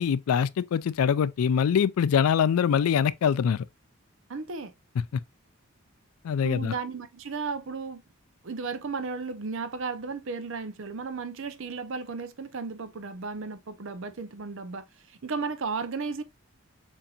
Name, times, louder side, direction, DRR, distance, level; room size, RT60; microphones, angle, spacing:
voice 1, 0.0-3.6 6.2-6.7, left 7 dB, 80° left, 0.3 m, -24 dB
voice 2, 4.3-4.7 6.4-8.0 8.4-16.2, right 4 dB, 60° right, 0.6 m, -34 dB
6.9 x 2.7 x 2.4 m
head